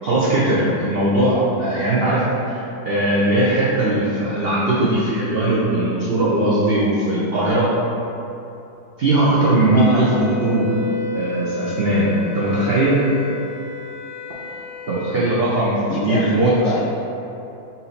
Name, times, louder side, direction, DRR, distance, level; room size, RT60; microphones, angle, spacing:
voice 1, 0.0-2.6 2.8-7.7 9.0-10.7 11.1-13.0 14.9-16.5, right 2 dB, 85° right, -7 dB, 0.5 m, -19 dB
Wind instrument woodwind instrument, 9.5-15.2, left 4 dB, 70° left, 0.9 m, -32 dB
voice 2, 9.7-10.0 15.9-16.8, left 2 dB, 90° left, -1 dB, 1.3 m, -25 dB
4.3 x 2.7 x 4.0 m, 2.9 s
omnidirectional pair, 1.8 m